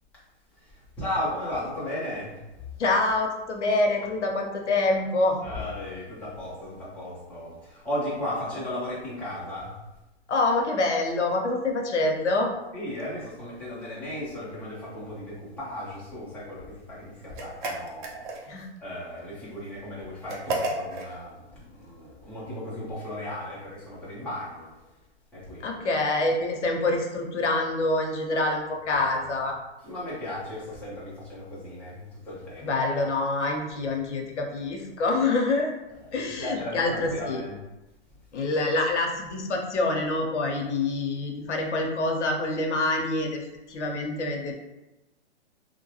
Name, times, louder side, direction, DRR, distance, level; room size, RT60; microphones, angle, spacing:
voice 1, 1.0-2.4 5.4-9.7 12.7-18.2 18.8-24.7 25.3-25.8 28.9-29.2 29.8-32.7 33.7-33.9 36.1-37.6, left 1 dB, 5° left, -10 dB, 0.7 m, -35 dB
voice 2, 2.8-5.4 10.3-12.5 18.5-18.7 25.6-29.5 32.6-35.7 36.1-37.4 38.3-43.4 43.7-44.5, left 2 dB, 90° left, 2 dB, 0.7 m, -26 dB
sound 1, 17.3-18.7 20.3-21.1, right 2 dB, 45° right, 0.6 m, -32 dB
2.6 x 2.2 x 2.7 m, 0.99 s
hypercardioid pair, 135°, 34 cm